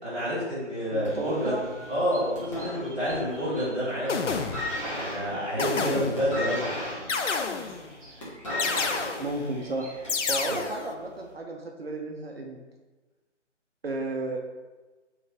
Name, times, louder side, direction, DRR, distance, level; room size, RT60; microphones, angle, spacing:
voice 1, 0.0-1.6 1.9-4.2 4.9-6.7 10.4-10.6, equal, 10° right, -16 dB, 0.8 m, -28 dB
voice 2, 0.9-1.7 9.2-9.9 10.3-12.6 13.8-14.4, right 2 dB, 55° right, 1 dB, 0.5 m, -32 dB
sound 1, 1.0-3.4 3.7-4.0 4.3-10.3 11.1-11.2, left 1 dB, 25° left, 1.1 m, -36 dB
Bird vocalization bird call bird song, 1.3-10.7, right 1 dB, 30° right, 1.0 m, -50 dB
sound 2, 3.1-3.3 4.1-4.8 5.6-6.4 7.1-7.9 8.6-9.4 10.1-10.9, left 5 dB, 75° left, 0.5 m, -30 dB
3.6 x 3.3 x 2.9 m, 1.2 s
figure-of-eight pair, 150°, 36 cm